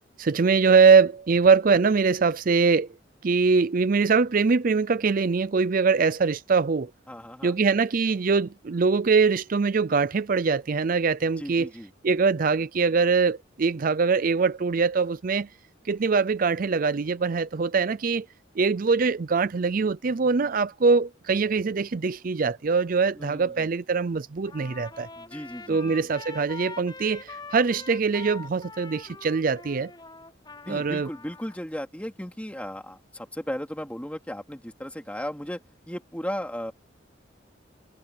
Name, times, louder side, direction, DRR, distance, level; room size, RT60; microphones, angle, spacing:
voice 1, 0.2-2.9 3.2-6.9 7.4-11.7 12.0-15.5 15.8-18.3 18.6-25.1 25.7-29.9 30.7-31.1, right 5 dB, 45° right, 0.5 m, -23 dB
voice 2, 7.1-7.6 11.4-11.9 23.2-23.7 25.2-25.9 30.7-35.6 35.9-36.7, equal, 5° left, 3.0 m, -35 dB
Trumpet, 24.5-31.6, left 3 dB, 25° left, 6.7 m, -43 dB
head